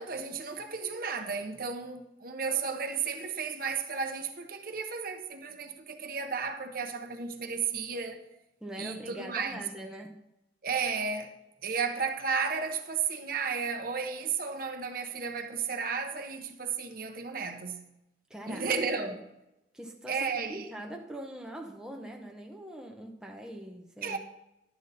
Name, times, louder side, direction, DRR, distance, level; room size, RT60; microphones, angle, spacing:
voice 1, 0.0-8.2 8.8-9.6 10.6-11.3 11.6-17.8 18.5-19.2 20.1-20.7 24.0-24.2, right 5 dB, 50° right, 0.8 m, -33 dB
voice 2, 8.6-10.2 18.3-19.2 19.7-24.2, right 1 dB, 5° right, 0.8 m, -43 dB
11.0 x 8.0 x 4.1 m
head